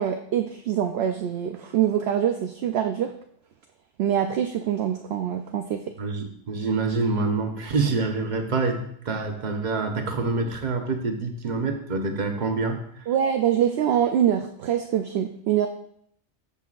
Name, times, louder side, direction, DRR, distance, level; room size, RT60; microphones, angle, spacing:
voice 1, 0.0-3.1 4.0-5.8 13.1-15.7, right 9 dB, 65° right, 5 dB, 0.8 m, -24 dB
voice 2, 6.0-12.8, right 3 dB, 40° right, 4 dB, 1.0 m, -26 dB
14.0 x 5.6 x 2.5 m, 0.68 s
omnidirectional pair, 1.2 m